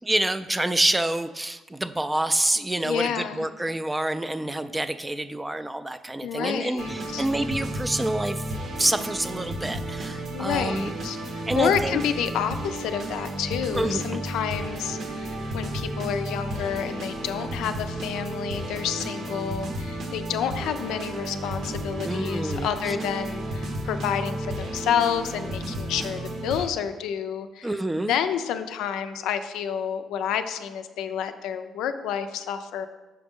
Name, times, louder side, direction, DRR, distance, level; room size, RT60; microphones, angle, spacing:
voice 1, 0.0-8.5 8.8-10.9 11.5-12.0 13.7-14.2 22.0-23.0 27.6-28.1, right 1 dB, 15° right, 11 dB, 0.3 m, -27 dB
voice 2, 2.8-3.5 6.2-7.3 10.3-11.2 11.6-27.7 28.1-32.9, left 8 dB, 90° left, 9 dB, 0.4 m, -29 dB
sound 1, 6.8-26.7, right 1 dB, 70° right, 1.0 m, -33 dB
5.7 x 5.0 x 3.6 m, 1.2 s
cardioid pair, 90°, 0 cm